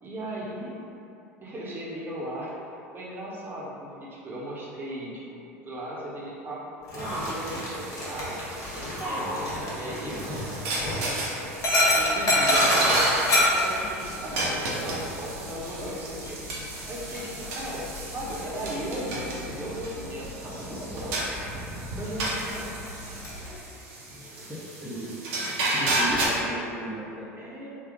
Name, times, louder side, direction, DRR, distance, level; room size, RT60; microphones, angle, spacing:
voice 1, 0.0-0.7 1.4-2.5 2.9-6.6 6.9-21.4 21.9-22.7 27.4-27.7, right 1 dB, 30° right, -5 dB, 0.9 m, -37 dB
Dog, 6.8-23.5, left 1 dB, 45° left, 1.1 m, -30 dB
sound 1, 7.0-26.3, right 1 dB, 65° right, 0.8 m, -32 dB
voice 2, 24.5-27.3, right 1 dB, ahead, -10 dB, 0.8 m, -36 dB
3.5 x 2.4 x 3.6 m, 2.8 s
hypercardioid pair, 75°, 8 cm